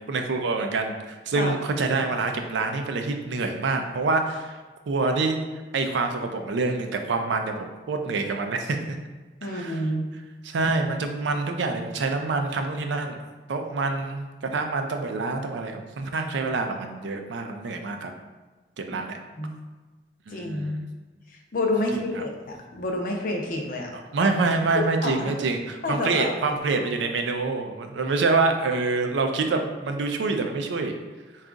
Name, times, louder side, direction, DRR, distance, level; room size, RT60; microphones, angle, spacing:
voice 1, 0.1-4.6 4.9-5.4 5.7-9.0 9.4-9.9 10.4-13.2 13.5-18.1 18.8-19.2 20.3-20.8 22.2-22.3 23.9-31.0, right 3 dB, 75° right, 5 dB, 0.4 m, -26 dB
voice 2, 9.4-10.1 18.9-19.0 19.4-19.5 20.3-20.8 21.5-23.9 24.7-25.3 25.8-26.4, left 1 dB, 45° left, 1 dB, 0.5 m, -28 dB
3.8 x 2.4 x 3.6 m, 1.3 s
head